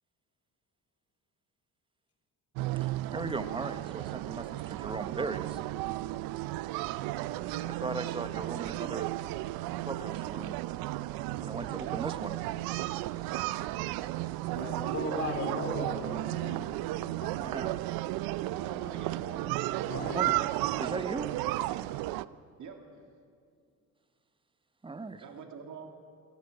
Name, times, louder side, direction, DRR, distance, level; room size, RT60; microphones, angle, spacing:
sound 1, 2.6-22.3, right 16 dB, 80° right, 0.5 m, -34 dB
voice 1, 2.8-4.4 4.7-5.6 7.7-9.1 9.8-10.6 11.4-12.4 17.5-17.7 20.1-20.3 20.8-21.3 24.8-25.2, right 3 dB, 15° right, 11 dB, 0.8 m, -37 dB
voice 2, 14.5-16.6 17.0-17.5 19.8-20.3, left 3 dB, 40° left, 1 dB, 3.1 m, -37 dB
voice 3, 18.4-19.6 22.1-22.2 22.6-23.0 25.2-25.9, right 5 dB, 55° right, 4 dB, 2.3 m, -45 dB
13.5 x 12.0 x 8.9 m, 2.3 s
cardioid pair, 95°, 35 cm